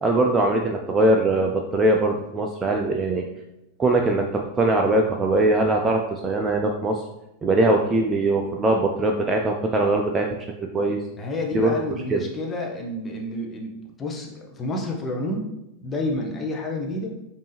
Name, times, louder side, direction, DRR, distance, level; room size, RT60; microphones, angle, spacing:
voice 1, 0.0-3.2 3.8-7.0 7.4-10.3 10.6-11.0 11.5-11.7 12.1-12.2, right 2 dB, 20° right, 2 dB, 0.4 m, -21 dB
voice 2, 11.0-13.7 14.0-15.5 15.8-17.2, left 2 dB, 20° left, 0 dB, 0.9 m, -29 dB
5.2 x 2.8 x 3.3 m, 0.90 s
figure-of-eight pair, 90°, 0 cm